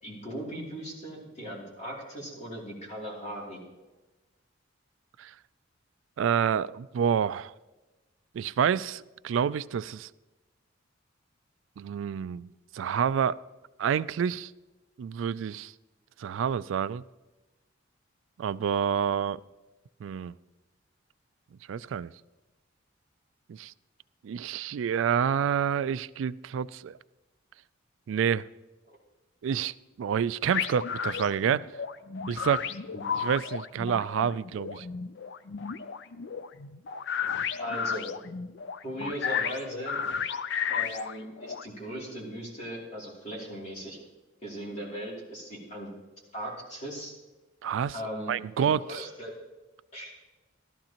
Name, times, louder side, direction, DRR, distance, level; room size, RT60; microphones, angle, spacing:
voice 1, 0.0-3.6 28.9-29.0 32.9-33.0 37.6-38.1 38.8-40.0 40.7-44.0 44.4-45.9 46.3-47.1 47.9-49.3 49.9-50.2, equal, 35° left, -3 dB, 3.1 m, -38 dB
voice 2, 6.2-7.5 8.3-10.1 11.8-13.4 13.8-14.5 15.0-15.7 16.2-17.0 18.4-19.4 20.0-20.3 21.7-22.1 23.5-23.7 24.2-27.0 28.1-28.5 29.4-31.7 32.3-32.6 33.2-34.9 47.6-47.9 48.3-49.1, right 8 dB, 70° right, 17 dB, 0.3 m, -28 dB
sound 1, 30.5-41.6, left 7 dB, 60° left, 0.4 m, -33 dB
14.5 x 12.5 x 2.9 m, 1.1 s
head